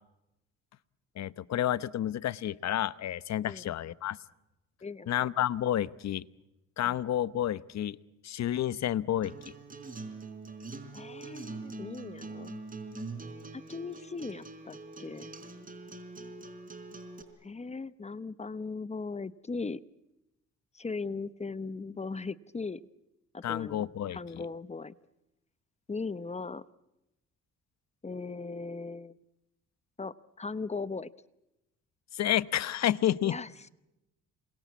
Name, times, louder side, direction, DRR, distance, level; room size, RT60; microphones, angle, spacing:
voice 1, 1.2-4.2 5.1-6.2 6.8-8.0 8.2-9.3 23.4-24.2 32.1-33.4, left 11 dB, 60° left, 17 dB, 0.9 m, -30 dB
voice 2, 4.8-5.3 10.9-12.6 13.5-15.3 17.4-19.8 20.7-22.8 23.3-24.9 25.9-26.6 28.0-29.2 30.0-31.1 33.2-33.5, left 4 dB, 20° left, 15 dB, 0.9 m, -38 dB
Acoustic guitar, 9.2-17.2, right 3 dB, 30° right, 4.3 m, -43 dB
28.0 x 22.0 x 8.5 m, 0.91 s
cardioid pair, 90°, 30 cm